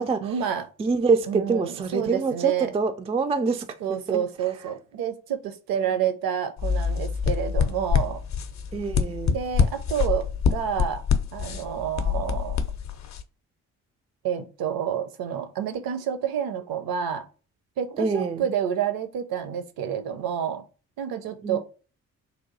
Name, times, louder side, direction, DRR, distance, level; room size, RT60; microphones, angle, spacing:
voice 1, 0.2-0.7 1.3-2.7 3.8-8.2 9.3-11.0 11.3-12.6 14.2-17.3 17.8-20.6 21.0-21.6, right 8 dB, 55° right, 0.8 m, -29 dB
voice 2, 0.8-4.2 8.7-9.4 18.0-18.4 21.4-21.6, right 4 dB, 15° right, 0.4 m, -25 dB
sound 1, 6.6-13.2, left 6 dB, 40° left, 0.7 m, -26 dB
3.4 x 2.6 x 3.9 m
figure-of-eight pair, 40°, 42 cm